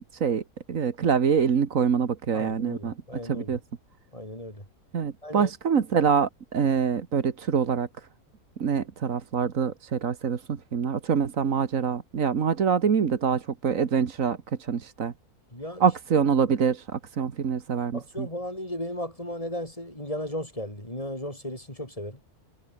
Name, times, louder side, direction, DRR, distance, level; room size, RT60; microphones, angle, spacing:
voice 1, 0.1-0.4 0.7-2.9 3.2-3.6 4.9-7.9 8.6-15.1 15.8-18.3, right 6 dB, 60° right, 1.8 m, -25 dB
voice 2, 2.3-3.5 4.1-4.6 5.2-5.5 15.5-15.9 17.9-22.2, left 1 dB, 20° left, 6.0 m, -35 dB
omnidirectional pair, 1.6 m